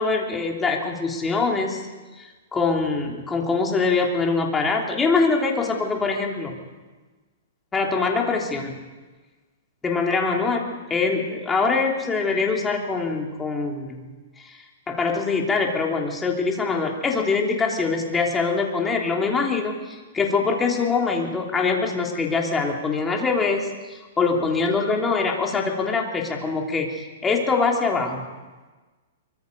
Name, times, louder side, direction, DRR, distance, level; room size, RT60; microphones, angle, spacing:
voice 1, 0.0-1.8 2.2-6.6 7.7-8.7 9.8-14.0 14.4-14.6 14.9-28.3, left 4 dB, 10° left, 0 dB, 3.1 m, -23 dB
25.0 x 23.5 x 5.4 m, 1.3 s
hypercardioid pair, 150°, 0 cm